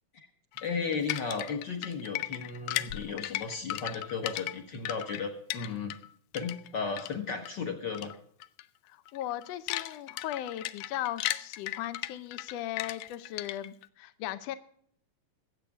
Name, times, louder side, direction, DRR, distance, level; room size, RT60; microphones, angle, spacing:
sound 1, 0.6-6.1 6.3-7.5 7.9-8.1 8.4-8.6 9.1-13.9, left 15 dB, 90° left, 2.1 m, -36 dB
voice 1, 0.6-5.9 6.3-8.1, left 5 dB, 50° left, 5 dB, 1.4 m, -35 dB
voice 2, 8.9-14.6, left 12 dB, 70° left, 13 dB, 1.6 m, -37 dB
22.0 x 8.3 x 3.5 m, 0.64 s
omnidirectional pair, 3.5 m